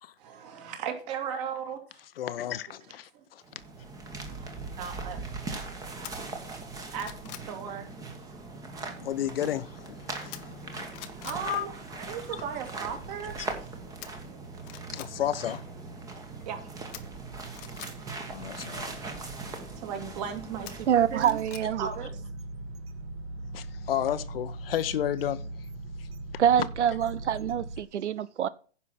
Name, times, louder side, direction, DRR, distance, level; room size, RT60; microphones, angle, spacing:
voice 1, 0.2-1.8 3.1-3.2 4.3-5.7 6.9-7.1 7.5-8.0 11.2-13.3 16.4-16.7 19.8-21.4 21.8-22.2, right 7 dB, 35° right, 2.7 m, -37 dB
voice 2, 2.2-3.4 9.0-11.1 11.4-11.7 12.3-12.4 13.4-13.5 14.9-15.6 18.3-19.0 23.5-25.4 26.0-26.1, left 11 dB, 55° left, 0.9 m, -32 dB
sound 1, 3.4-21.7, right 3 dB, 10° right, 1.3 m, -40 dB
sound 2, 6.0-6.1 6.6-7.5 10.3-10.7 10.9-11.4 14.0-14.1 14.6-15.1 16.9-17.9 20.7-21.7 22.0-22.1, left 14 dB, 20° left, 0.6 m, -44 dB
sound 3, 20.9-27.8, right 2 dB, 60° right, 1.4 m, -39 dB
voice 3, 20.9-21.9 26.4-28.5, right 9 dB, 85° right, 0.7 m, -25 dB
10.0 x 5.9 x 5.7 m
hypercardioid pair, 155°, 34 cm